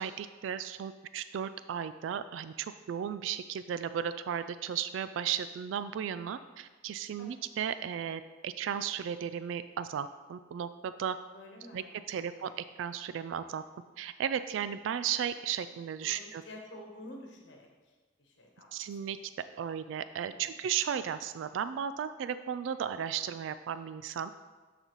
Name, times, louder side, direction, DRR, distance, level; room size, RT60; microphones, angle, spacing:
voice 1, 0.0-11.2 11.7-13.6 14.0-16.4 18.7-19.2 19.6-24.3, right 8 dB, 90° right, 13 dB, 0.3 m, -35 dB
voice 2, 11.3-12.6 16.0-19.2 20.2-20.6, left 1 dB, 70° left, 1 dB, 1.1 m, -51 dB
12.0 x 4.1 x 3.1 m, 1.4 s
head